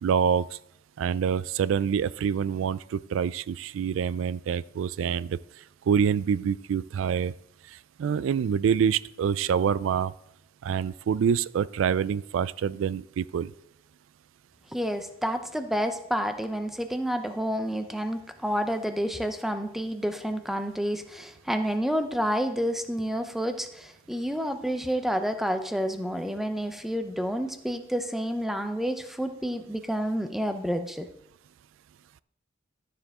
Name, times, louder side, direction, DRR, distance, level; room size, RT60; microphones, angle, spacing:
voice 1, 0.0-0.6 1.0-5.4 5.9-7.3 7.7-10.1 10.6-13.5, right 7 dB, 85° right, 18 dB, 0.3 m, -26 dB
voice 2, 14.7-31.1, equal, ahead, 7 dB, 0.6 m, -29 dB
12.5 x 6.8 x 3.6 m, 0.78 s
head